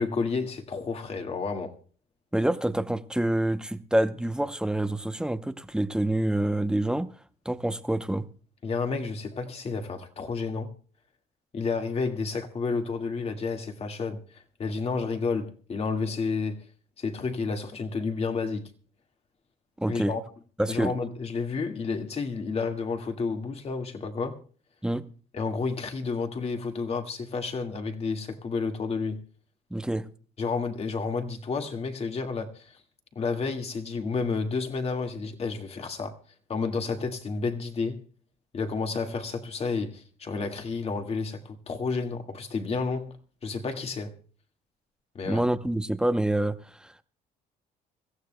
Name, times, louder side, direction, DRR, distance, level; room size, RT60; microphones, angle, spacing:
voice 1, 0.0-1.8 8.6-10.7 11.5-16.6 17.0-18.7 19.9-20.2 20.7-24.4 25.3-29.2 30.4-32.8 33.2-36.2 36.5-38.0 38.5-44.1 45.2-45.5, left 4 dB, 35° left, 1.9 m, -31 dB
voice 2, 2.3-7.1 7.4-8.3 19.8-20.1 20.6-20.9 24.8-25.0 29.7-30.1 45.2-47.0, right 1 dB, 5° right, 0.7 m, -27 dB
25.5 x 15.0 x 2.2 m
cardioid pair, 110°, 17 cm